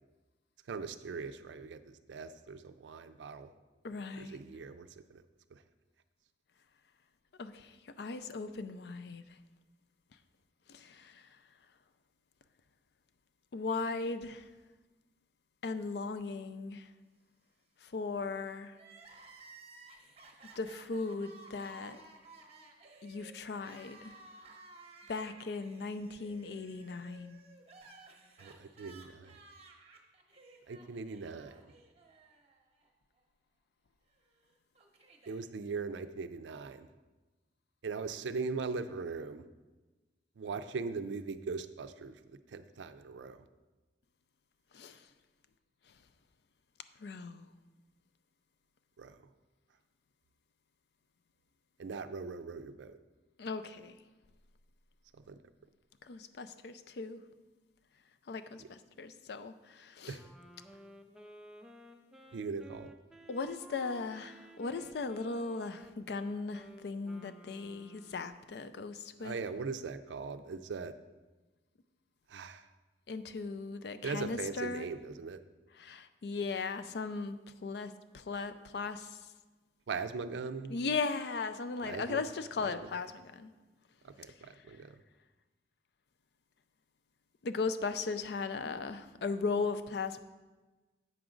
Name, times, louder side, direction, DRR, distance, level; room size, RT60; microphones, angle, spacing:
voice 1, 0.7-3.5 4.2-5.2 5.5-5.6 28.4-29.4 30.7-31.6 35.3-36.9 37.8-39.5 40.4-42.2 42.5-43.4 49.0-49.2 51.8-53.0 55.1-55.4 60.1-60.2 62.3-62.9 69.2-70.9 72.3-72.7 74.0-75.4 79.9-80.8 81.8-82.2 82.6-82.9 84.0-85.0, right 4 dB, 80° right, 0.4 m, -40 dB
voice 2, 3.8-4.4 7.4-9.2 10.7-11.3 13.5-14.4 15.6-16.8 17.8-18.7 20.6-22.0 23.0-24.1 25.1-27.4 44.7-45.0 47.0-47.5 53.4-54.0 56.0-57.2 58.3-60.2 63.3-69.4 73.1-74.9 75.8-79.2 80.7-83.5 87.4-90.2, left 4 dB, 65° left, 0.4 m, -37 dB
Crying sobbing, 18.7-32.9 33.2-33.3 34.2-35.4, right 3 dB, 35° right, 0.8 m, -56 dB
Wind instrument woodwind instrument, 60.1-68.4, equal, 5° right, 0.4 m, -55 dB
7.9 x 6.0 x 3.8 m
head